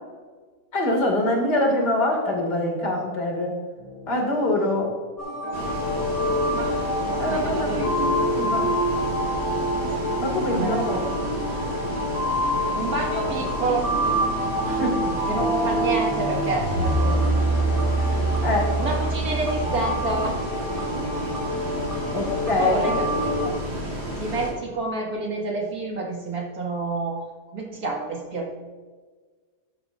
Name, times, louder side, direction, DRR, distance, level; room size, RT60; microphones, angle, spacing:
voice 1, 0.7-3.6 4.1-5.0 7.2-8.7 10.2-11.0 14.6-15.2 18.0-18.8 21.8-21.9 22.1-22.9, left 1 dB, 80° left, 1 dB, 3.1 m, -25 dB
sound 1, 3.8-4.7 5.3-8.7, equal, 5° right, 2.5 m, -41 dB
sound 2, 5.2-23.5, equal, 10° left, 2.7 m, -26 dB
Bus, 5.5-24.5, right 1 dB, 40° right, 3.7 m, -32 dB
voice 2, 7.1-7.9 8.5-8.7 10.5-11.0 12.4-13.9 15.3-17.6 18.2-18.4 18.8-20.4 22.6-23.6 24.2-27.2 27.5-28.5, right 2 dB, 65° right, -1 dB, 2.5 m, -29 dB
13.0 x 10.0 x 2.6 m, 1.4 s
omnidirectional pair, 1.7 m